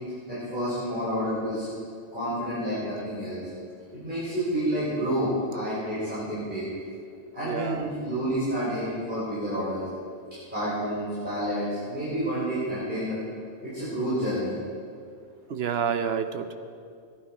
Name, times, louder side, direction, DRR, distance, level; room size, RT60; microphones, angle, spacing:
voice 1, 0.3-1.6 2.1-3.4 3.9-6.6 7.3-9.9 10.5-13.2 13.6-14.5, equal, 45° right, -12 dB, 4.9 m, -29 dB
voice 2, 7.4-7.9 15.5-16.5, right 7 dB, 65° right, 8 dB, 1.0 m, -29 dB
16.5 x 11.5 x 5.0 m, 2.3 s
omnidirectional pair, 1.1 m